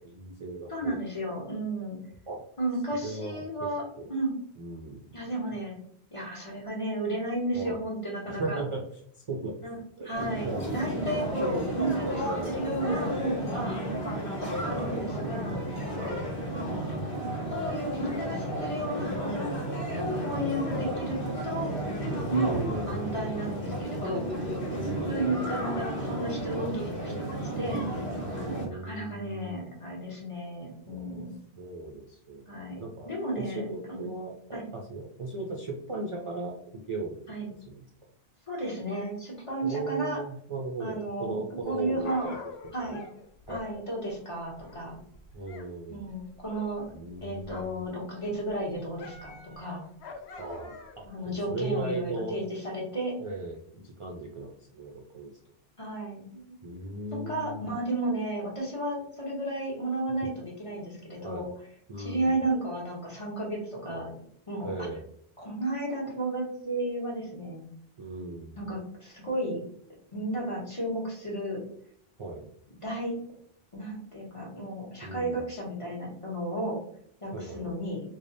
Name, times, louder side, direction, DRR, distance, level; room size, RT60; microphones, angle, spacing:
voice 1, 0.0-1.0 2.3-2.4 3.0-3.7 4.0-4.1 4.6-5.0 7.6-7.8 8.3-8.8 9.1-9.5 10.0-10.6 12.0-12.6 14.4-15.4 15.8-16.4 18.5-18.7 22.3-22.9 24.7-25.5 28.3-29.6 30.9-31.2 31.6-37.2 37.7-37.8 39.6-42.4 42.8-43.0 43.5-43.6 45.3-46.1 46.9-47.8 50.4-52.4 53.2-55.4 56.6-57.7 61.2-61.5 61.9-62.4 63.9-64.0 64.6-65.0 68.0-68.6 72.2-72.5 75.0-75.4 77.3-77.8, right 3 dB, 45° right, 0 dB, 0.4 m, -37 dB
voice 2, 0.7-2.0 2.6-3.8 4.1-4.3 5.1-5.8 6.1-8.6 9.6-9.8 10.0-13.8 14.6-15.7 17.5-19.6 20.0-21.7 22.3-24.5 25.1-27.8 28.7-31.3 32.5-34.1 34.5-34.7 37.3-37.5 38.5-40.2 40.8-41.4 41.6-42.3 42.7-43.0 43.5-45.0 45.9-46.8 47.2-49.8 51.0-53.1 55.8-56.5 57.1-61.5 62.0-64.1 64.5-64.9 65.4-67.7 68.5-69.6 70.1-71.6 72.8-73.2 73.7-76.8 77.2-78.0, right 1 dB, 30° left, -3 dB, 1.1 m, -33 dB
sound 1, 10.1-28.7, right 1 dB, 60° left, 1.0 m, -33 dB
Dog, 41.6-45.7 46.0-47.9 48.2-51.1 51.8-51.9, left 4 dB, 85° left, 0.9 m, -46 dB
3.3 x 2.1 x 3.9 m, 0.65 s
omnidirectional pair, 1.1 m